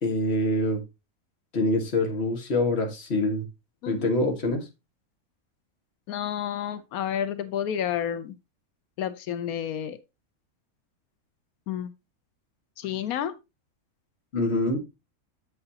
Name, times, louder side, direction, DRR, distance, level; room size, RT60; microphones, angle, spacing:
voice 1, 0.0-0.8 1.5-3.5 3.9-4.6 14.3-14.8, left 2 dB, 45° left, 1.8 m, -25 dB
voice 2, 6.1-8.3 9.0-10.0 11.7-11.9 12.8-13.3, left 9 dB, 85° left, 1.1 m, -30 dB
7.8 x 7.7 x 2.8 m
omnidirectional pair, 1.5 m